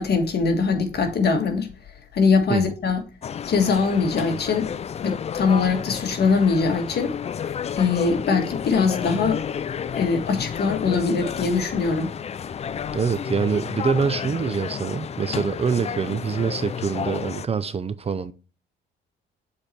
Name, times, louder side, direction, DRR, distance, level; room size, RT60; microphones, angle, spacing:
voice 1, 0.0-1.7 2.1-3.0 3.5-4.7 5.0-7.1 7.8-9.4 9.9-12.1, left 4 dB, 55° left, 1.7 m, -22 dB
sound 1, 3.2-17.5, left 7 dB, 35° left, 0.4 m, -31 dB
voice 2, 12.9-18.3, right 6 dB, 30° right, 0.5 m, -25 dB
7.0 x 4.3 x 4.5 m
cardioid pair, 90°, 20 cm